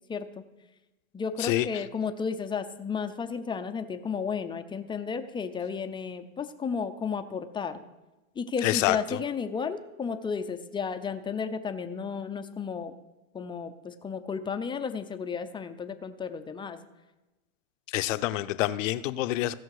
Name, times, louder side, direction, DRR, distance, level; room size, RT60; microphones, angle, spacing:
voice 1, 0.1-0.4 1.1-7.8 8.4-12.9 13.3-16.8, left 6 dB, 10° left, 9 dB, 0.5 m, -33 dB
voice 2, 1.4-1.8 8.6-9.2 17.9-19.5, left 15 dB, 65° left, 12 dB, 0.7 m, -27 dB
16.0 x 5.7 x 4.8 m, 1.1 s
hypercardioid pair, 110°, 42 cm